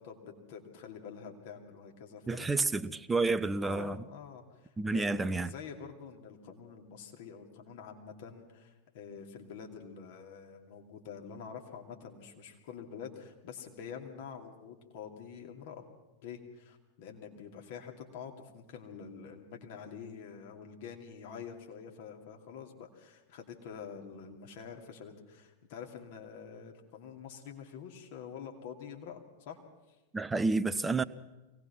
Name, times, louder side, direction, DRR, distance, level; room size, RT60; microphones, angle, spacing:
voice 1, 0.0-2.9 3.6-15.9 16.2-29.6 29.9-30.0, left 7 dB, 50° left, 2 dB, 2.5 m, -47 dB
voice 2, 2.3-4.0 4.8-5.5 30.1-31.0, right 3 dB, 10° right, 14 dB, 0.7 m, -30 dB
24.0 x 18.5 x 5.9 m, 1.1 s
figure-of-eight pair, 90°, 0 cm